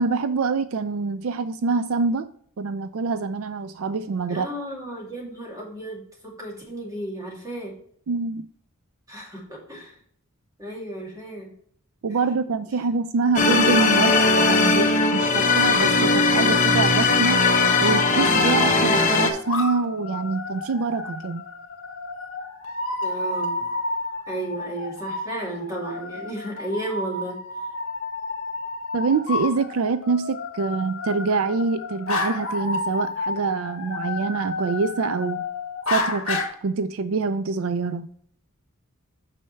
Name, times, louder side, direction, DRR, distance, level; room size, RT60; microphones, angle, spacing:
voice 1, 0.0-2.3 2.6-4.5 8.1-8.5 12.0-14.1 14.5-17.4 17.8-21.4 28.9-35.4 35.9-38.1, right 4 dB, 70° right, 12 dB, 0.4 m, -25 dB
voice 2, 4.3-7.7 9.1-9.9 10.6-11.5 23.0-23.5 24.3-27.4, right 1 dB, 15° right, -3 dB, 2.5 m, -33 dB
sound 1, 13.4-19.3, left 3 dB, 35° left, 1.1 m, -19 dB
sound 2, 17.1-36.5, left 3 dB, 65° left, 1.8 m, -31 dB
8.9 x 5.7 x 3.2 m, 0.62 s
head